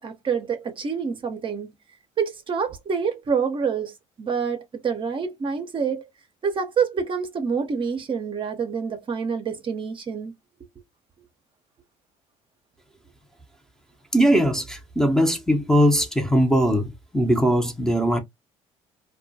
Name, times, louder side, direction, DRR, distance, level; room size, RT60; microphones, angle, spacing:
voice 1, 0.0-1.8 2.2-6.0 6.4-10.3, right 6 dB, 40° right, 0.6 m, -27 dB
voice 2, 14.1-18.2, equal, 5° left, 0.6 m, -20 dB
2.2 x 2.1 x 2.6 m
supercardioid pair, 70°, 14 cm